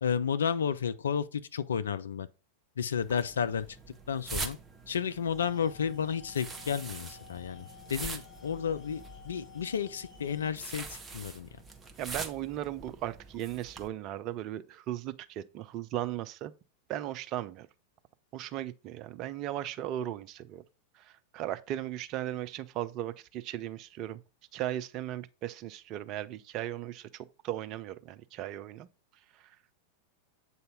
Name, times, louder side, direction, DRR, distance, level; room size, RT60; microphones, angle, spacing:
voice 1, 0.0-2.3 2.8-3.7 4.1-4.6 4.9-11.5, left 7 dB, 65° left, 0.4 m, -32 dB
sound 1, 3.0-13.9, right 3 dB, 15° right, 0.9 m, -44 dB
sound 2, 5.3-10.5, left 7 dB, 25° left, 3.4 m, -53 dB
voice 2, 12.0-16.5 16.9-17.7 18.3-20.6 21.0-24.2 24.5-28.9 29.4-29.6, right 12 dB, 40° right, 0.5 m, -37 dB
7.8 x 2.8 x 5.2 m
figure-of-eight pair, 90°, 0 cm